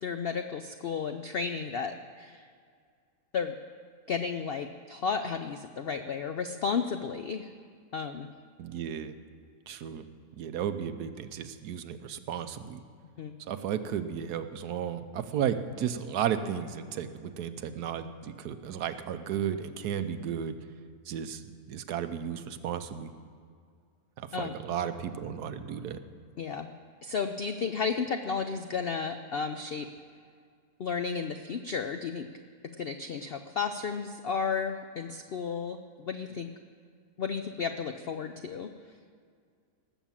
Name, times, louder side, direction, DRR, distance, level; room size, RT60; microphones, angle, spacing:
voice 1, 0.0-2.4 3.3-3.5 4.1-7.5 7.9-8.3 13.2-13.4 24.3-24.5 26.4-26.7 27.0-29.9 30.8-32.3 32.8-36.5 37.2-38.7, left 5 dB, 75° left, 7 dB, 0.5 m, -33 dB
voice 2, 8.6-9.1 9.7-10.1 10.3-12.8 13.4-20.6 21.1-23.1 24.2-26.0, right 8 dB, 80° right, 10 dB, 1.3 m, -34 dB
18.5 x 7.2 x 7.4 m, 2.1 s
omnidirectional pair, 1.7 m